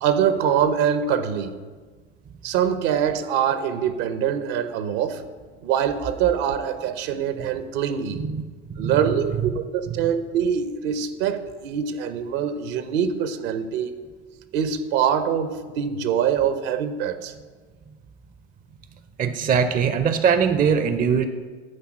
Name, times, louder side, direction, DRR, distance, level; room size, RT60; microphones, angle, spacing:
voice 1, 0.0-1.5 2.4-5.2 5.6-8.2 8.8-13.9 14.5-17.3, right 8 dB, 60° right, 11 dB, 0.9 m, -24 dB
voice 2, 19.2-21.3, right 6 dB, 25° right, 10 dB, 0.6 m, -21 dB
9.6 x 4.1 x 7.5 m, 1.4 s
hypercardioid pair, 75°, 35 cm